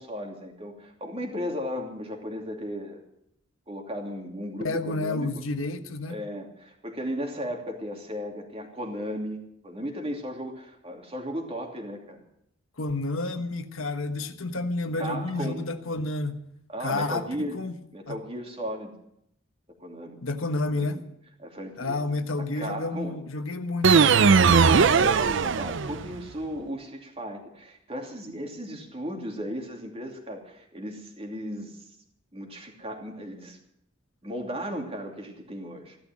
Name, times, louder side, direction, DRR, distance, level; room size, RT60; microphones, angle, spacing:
voice 1, 0.0-3.0 3.7-5.4 6.1-12.2 15.0-15.6 16.7-17.6 17.9-18.9 19.8-20.2 20.8-20.9 21.4-22.0 22.4-23.2 23.9-24.1 24.7-31.8 32.3-33.6 34.2-36.0, equal, 30° right, 2.8 m, -35 dB
voice 2, 4.6-6.2 12.8-16.4 16.8-17.2 17.5-17.7 18.1-18.2 20.2-21.0 21.8-24.3, left 2 dB, 85° left, 1.2 m, -30 dB
sound 1, 23.8-26.2, right 5 dB, 60° right, 0.5 m, -19 dB
15.5 x 12.5 x 7.4 m
head